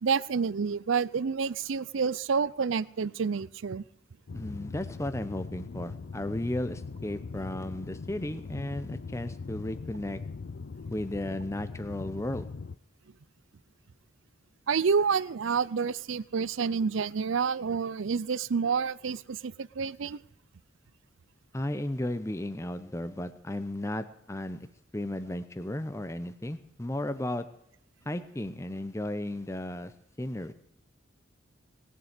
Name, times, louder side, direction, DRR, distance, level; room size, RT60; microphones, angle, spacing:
voice 1, 0.0-3.8 14.7-20.2, right 5 dB, 75° right, 21 dB, 0.5 m, -28 dB
sound 1, 4.3-12.8, left 4 dB, 60° left, 0.5 m, -41 dB
voice 2, 4.3-10.2 10.9-12.5 21.5-24.7 24.9-27.5 28.1-29.9 30.2-30.5, left 1 dB, 15° left, 11 dB, 0.7 m, -34 dB
20.0 x 7.5 x 8.2 m, 0.72 s
head